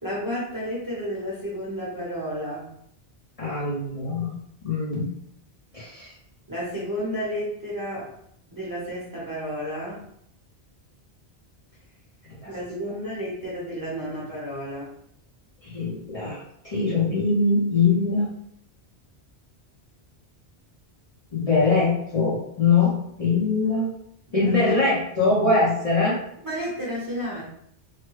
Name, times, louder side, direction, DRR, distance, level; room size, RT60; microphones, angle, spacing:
voice 1, 0.0-2.7 6.5-8.1 8.5-10.0 12.4-14.9 24.3-24.5 26.4-27.4, equal, 20° right, -7 dB, 0.9 m, -31 dB
voice 2, 3.4-4.3 4.6-5.1 5.7-6.1 12.3-12.5 15.6-18.3 21.3-23.9 24.3-26.2, left 3 dB, 35° left, -7 dB, 0.8 m, -22 dB
3.2 x 2.2 x 3.1 m, 0.70 s
omnidirectional pair, 1.1 m